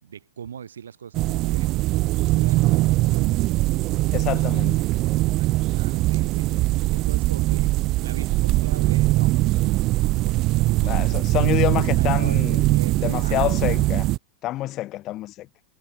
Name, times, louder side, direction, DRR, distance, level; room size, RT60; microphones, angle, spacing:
voice 1, 0.0-1.7 2.3-3.5 4.3-4.5 5.3-7.7 8.0-13.7, right 8 dB, 65° right, 4.3 m, -41 dB
sound 1, 1.1-14.2, right 18 dB, 40° right, 1.2 m, -21 dB
voice 2, 4.1-4.8 10.8-12.6 13.0-14.1 14.4-15.5, left 15 dB, 35° left, 0.7 m, -27 dB
figure-of-eight pair, 90°, 0 cm